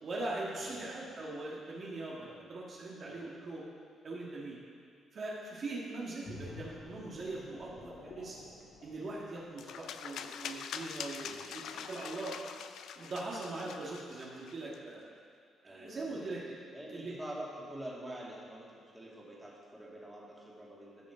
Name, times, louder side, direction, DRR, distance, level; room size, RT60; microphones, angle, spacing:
voice 1, 0.0-3.6 4.0-4.6 5.1-8.4 8.8-12.3 12.9-15.1 15.6-16.4 16.9-17.1, right 2 dB, 50° right, -5 dB, 1.6 m, -41 dB
voice 2, 0.6-1.1 2.3-2.5 3.0-3.3 11.2-11.5 15.6-16.4 16.7-21.1, right 1 dB, 10° right, -5 dB, 2.3 m, -47 dB
sound 1, 6.2-9.8 10.3-10.5, left 3 dB, 55° left, 1.9 m, -50 dB
sound 2, 9.6-14.8, left 8 dB, 75° left, 0.4 m, -44 dB
14.0 x 5.2 x 5.0 m, 2.3 s
cardioid pair, 90°, 0 cm